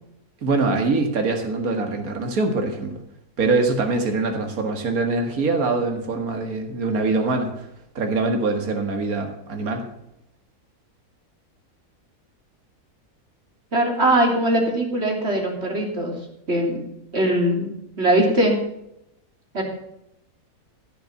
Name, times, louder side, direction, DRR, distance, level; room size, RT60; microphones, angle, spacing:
voice 1, 0.4-3.0 3.4-7.7 8.0-9.8, right 3 dB, 65° right, 4 dB, 2.3 m, -23 dB
voice 2, 13.7-16.1 16.5-16.8 17.1-18.6 19.5-19.6, right 1 dB, 40° right, 1 dB, 3.5 m, -21 dB
15.5 x 7.1 x 7.4 m, 0.81 s
omnidirectional pair, 1.6 m